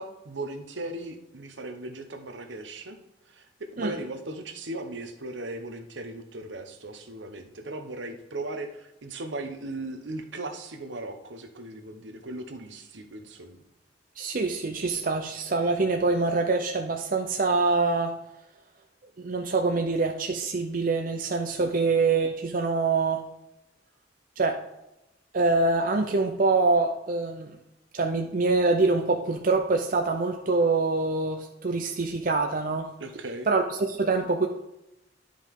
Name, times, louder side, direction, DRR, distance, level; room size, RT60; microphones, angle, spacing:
voice 1, 0.0-3.0 3.3-13.6 21.6-21.8 33.0-33.5, right 2 dB, 75° right, 6 dB, 1.1 m, -38 dB
voice 2, 14.2-18.1 19.2-23.2 24.4-24.6 25.3-27.6 27.9-32.9 33.5-34.5, right 3 dB, 45° right, 4 dB, 0.6 m, -25 dB
11.0 x 5.2 x 3.7 m, 0.92 s
head